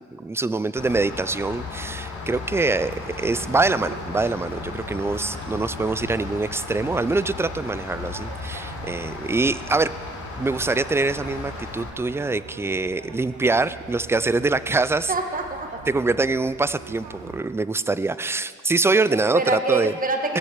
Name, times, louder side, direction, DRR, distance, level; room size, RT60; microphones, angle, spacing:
voice 1, 0.0-9.9 10.4-15.1 15.9-19.9, right 3 dB, 10° right, 15 dB, 0.3 m, -24 dB
Rain, 0.8-11.9, left 4 dB, 70° left, 2.8 m, -35 dB
sound 1, 2.8-17.4, right 5 dB, 90° right, 1.3 m, -42 dB
voice 2, 15.1-15.8 19.1-20.4, right 3 dB, 30° right, 4 dB, 1.5 m, -25 dB
19.5 x 6.7 x 7.3 m, 2.3 s
cardioid pair, 90°, 30 cm